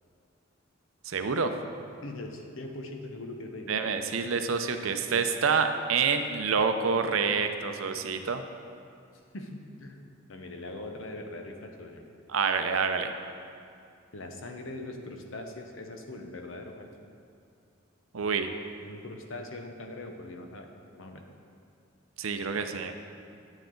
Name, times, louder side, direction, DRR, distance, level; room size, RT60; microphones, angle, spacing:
voice 1, 1.0-1.5 3.7-8.4 12.3-13.1 18.1-18.5 22.2-22.9, right 5 dB, 80° right, 7 dB, 0.6 m, -27 dB
voice 2, 2.0-3.8 9.3-12.0 14.1-16.9 18.8-20.7 21.0-21.2, left 2 dB, 70° left, 4 dB, 0.9 m, -41 dB
9.3 x 8.9 x 3.8 m, 2.4 s
head